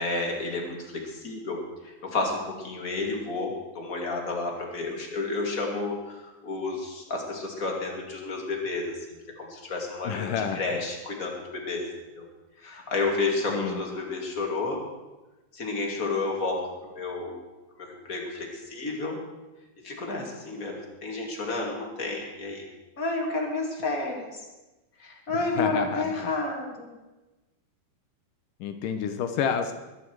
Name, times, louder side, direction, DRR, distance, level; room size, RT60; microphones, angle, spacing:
voice 1, 0.0-11.9 12.1-12.3 12.6-14.8 15.5-17.4 17.7-19.2 19.8-22.7 23.0-24.4 25.0-26.9, left 3 dB, 25° left, 0 dB, 2.3 m, -31 dB
voice 2, 10.0-10.8 13.5-13.8 25.4-26.3 28.6-29.7, left 7 dB, 70° left, 7 dB, 2.3 m, -29 dB
22.0 x 10.0 x 4.7 m, 1.1 s
omnidirectional pair, 4.3 m